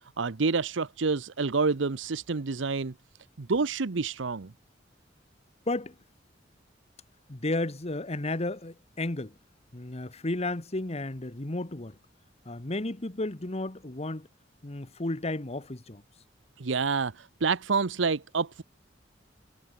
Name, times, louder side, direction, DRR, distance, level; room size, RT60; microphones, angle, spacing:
voice 1, 0.2-2.9 3.4-4.5 16.6-18.6, right 4 dB, 80° right, 0.8 m, -28 dB
voice 2, 7.3-9.3 9.7-12.0 12.4-14.3 14.6-16.0, left 2 dB, 35° left, 1.4 m, -33 dB
head